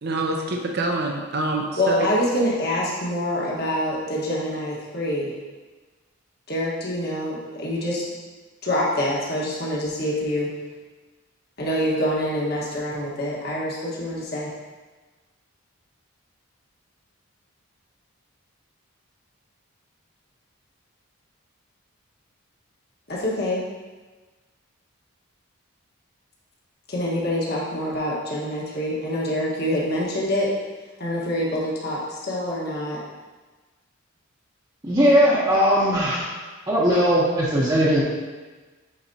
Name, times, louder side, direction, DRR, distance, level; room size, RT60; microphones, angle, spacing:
voice 1, 0.0-2.1, right 2 dB, 50° right, 1 dB, 0.6 m, -26 dB
voice 2, 1.8-5.3 6.5-8.0 8.6-10.5 11.6-14.5 23.1-23.6 26.9-30.5 31.0-33.0, left 1 dB, 45° left, -5 dB, 1.4 m, -26 dB
voice 3, 34.8-36.3 36.7-38.0, equal, 20° right, -9 dB, 0.9 m, -19 dB
8.9 x 4.2 x 2.8 m, 1.3 s
head